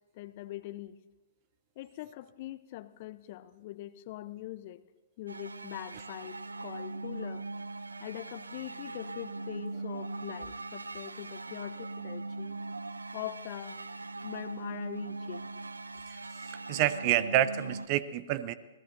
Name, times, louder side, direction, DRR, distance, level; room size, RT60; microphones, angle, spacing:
voice 1, 0.1-1.0 1.8-4.8 5.2-7.5 8.0-12.6 13.1-13.8 14.2-15.5, left 15 dB, 45° left, 15 dB, 0.6 m, -42 dB
sound 1, 5.3-17.9, right 2 dB, 85° right, 0.5 m, -40 dB
voice 2, 16.7-18.5, right 13 dB, 40° right, 16 dB, 0.6 m, -28 dB
27.5 x 18.5 x 2.6 m, 1.2 s
figure-of-eight pair, 115°, 0 cm